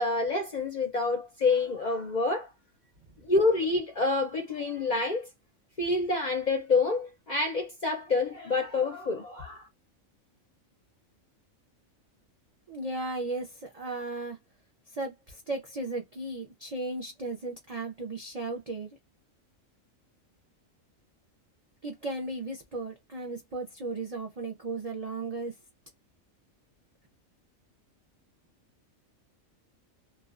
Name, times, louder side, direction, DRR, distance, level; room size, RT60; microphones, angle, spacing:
voice 1, 0.0-2.5 3.2-5.3 5.8-9.7, left 3 dB, 50° left, 0.5 m, -27 dB
voice 2, 12.7-14.4 14.9-19.0 21.8-25.5, right 2 dB, 60° right, 0.3 m, -35 dB
2.4 x 2.2 x 2.4 m
omnidirectional pair, 1.4 m